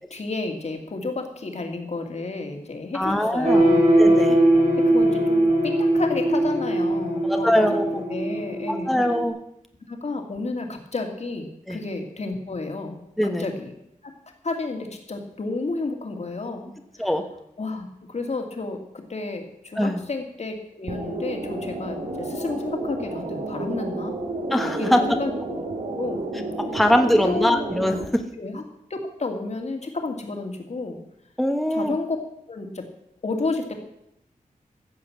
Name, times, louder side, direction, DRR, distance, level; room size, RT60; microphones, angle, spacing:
voice 1, 0.1-3.9 4.3-4.4 4.7-8.9 9.9-13.0 13.2-13.7 14.0-14.1 14.4-17.1 17.6-24.2 24.6-25.3 26.0-26.3 27.2-27.6 28.4-28.6 28.9-31.0 31.7-32.2 32.5-32.8 33.2-33.8, left 3 dB, 50° left, 4 dB, 2.3 m, -31 dB
voice 2, 2.9-3.6 4.0-4.4 7.2-8.0 8.7-9.4 11.7-11.8 13.2-13.5 17.0-17.2 19.7-20.0 24.5-25.0 26.6-28.2 31.4-31.9, equal, ahead, 5 dB, 1.2 m, -22 dB
sound 1, 3.4-9.3, right 1 dB, 50° right, 3.6 m, -20 dB
sound 2, 20.9-28.1, right 2 dB, 90° right, 2.6 m, -31 dB
15.0 x 7.6 x 7.3 m, 0.80 s
wide cardioid pair, 125°, 14 cm